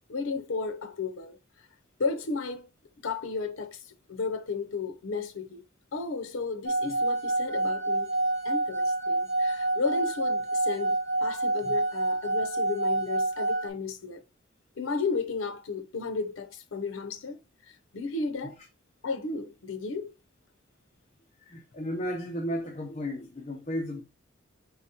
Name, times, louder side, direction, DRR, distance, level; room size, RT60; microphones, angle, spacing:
voice 1, 0.1-1.4 2.0-2.7 3.0-3.8 4.1-5.6 5.9-8.1 8.4-11.0 11.2-14.2 14.8-17.4 17.9-18.6 19.0-20.1, left 4 dB, 85° left, 0.6 m, -33 dB
sound 1, 6.6-13.7, right 2 dB, 70° right, 1.1 m, -28 dB
voice 2, 21.4-24.0, equal, 35° left, 0.7 m, -34 dB
4.3 x 3.9 x 2.8 m
head